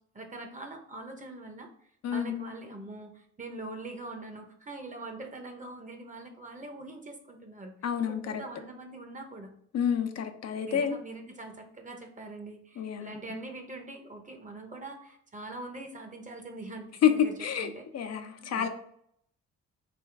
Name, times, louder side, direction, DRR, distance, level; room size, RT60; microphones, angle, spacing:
voice 1, 0.1-1.7 2.1-7.8 8.1-9.5 10.7-17.9 18.4-18.7, right 2 dB, 25° right, 0.9 m, -43 dB
voice 2, 2.0-2.4 7.8-8.4 9.7-11.0 12.8-13.4 17.0-18.7, left 8 dB, 55° left, 0.6 m, -29 dB
3.5 x 3.0 x 4.5 m
cardioid pair, 90°, 30 cm